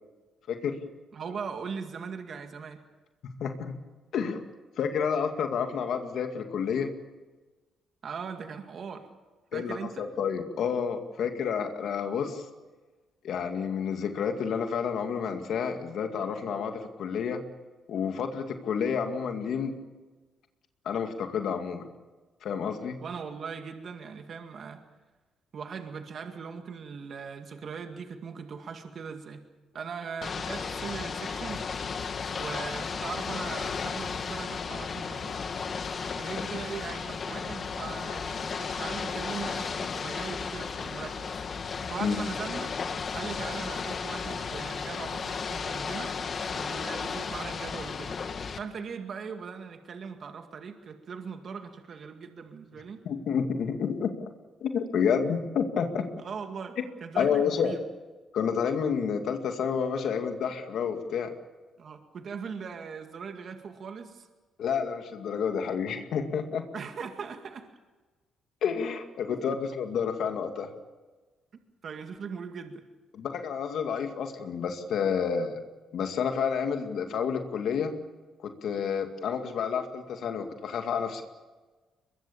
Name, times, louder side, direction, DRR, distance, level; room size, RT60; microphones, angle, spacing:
voice 1, 1.1-2.8 8.0-9.1 9.5-10.1 23.0-24.8 25.5-29.4 29.7-31.6 32.4-35.4 36.2-41.3 41.9-42.7 43.1-48.2 48.5-53.0 56.2-57.8 61.8-64.3 66.7-67.7 69.3-69.6 71.8-72.8, right 6 dB, 55° right, 6 dB, 2.1 m, -39 dB
voice 2, 3.2-3.7 4.1-4.4 4.8-6.9 9.5-12.4 13.2-17.4 17.9-19.7 20.9-21.9 22.4-23.0 42.0-42.2 53.0-54.1 54.6-56.1 57.1-57.7 58.3-61.3 64.6-66.6 68.6-70.7 73.1-75.6 75.9-77.9 78.4-81.2, left 7 dB, 70° left, 5 dB, 2.3 m, -29 dB
Ocean / Boat Water vehicle, 30.2-48.6, left 5 dB, 45° left, 1.9 m, -34 dB
23.5 x 21.5 x 7.2 m, 1.3 s
cardioid pair, 90°, 0 cm